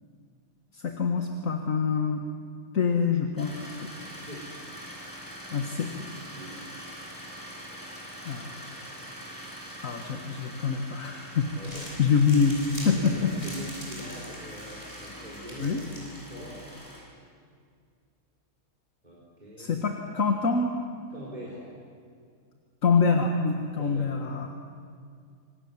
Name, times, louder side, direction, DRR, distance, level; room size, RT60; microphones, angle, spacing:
voice 1, 0.7-2.2 2.7-3.9 5.5-5.9 8.3-8.5 9.8-11.5 12.0-13.3 15.6-15.8 19.6-20.7 22.8-24.5, left 5 dB, 65° left, 3 dB, 2.0 m, -25 dB
sound 1, 3.4-17.0, equal, 15° left, 6.8 m, -44 dB
voice 2, 4.0-4.5 6.3-6.6 11.5-11.9 12.9-15.8 16.2-16.6 19.0-19.8 21.1-21.7 23.7-24.1, equal, 30° right, -5 dB, 5.0 m, -43 dB
Crumpling crinkling, 11.4-16.7, left 1 dB, 40° left, 8.2 m, -44 dB
27.0 x 26.5 x 7.5 m, 2.2 s
omnidirectional pair, 1.5 m